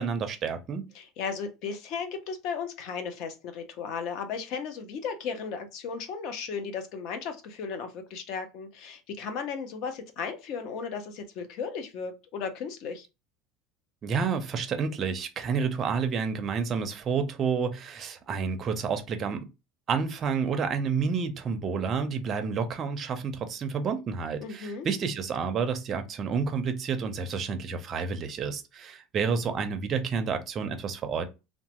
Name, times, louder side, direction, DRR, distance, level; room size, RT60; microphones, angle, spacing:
voice 1, 0.0-0.8 14.0-19.5 19.9-31.3, right 5 dB, 30° right, 0.5 m, -29 dB
voice 2, 0.9-13.1 24.4-24.9, left 6 dB, 50° left, 0.6 m, -35 dB
3.0 x 2.1 x 2.9 m
cardioid pair, 165°, 0 cm